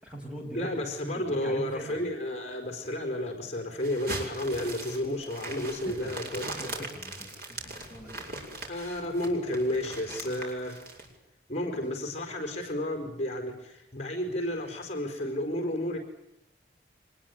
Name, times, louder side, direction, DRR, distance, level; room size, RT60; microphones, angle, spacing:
voice 1, 0.0-0.8 1.1-2.0 5.8-8.1 11.6-11.8, equal, 5° right, 1 dB, 6.9 m, -42 dB
voice 2, 0.5-6.5 6.7-6.8 8.7-10.8 11.5-16.0, left 1 dB, 35° left, 5 dB, 4.5 m, -32 dB
sound 1, 3.8-11.1, right 2 dB, 55° right, 6.6 m, -40 dB
25.5 x 20.5 x 9.6 m, 0.83 s
head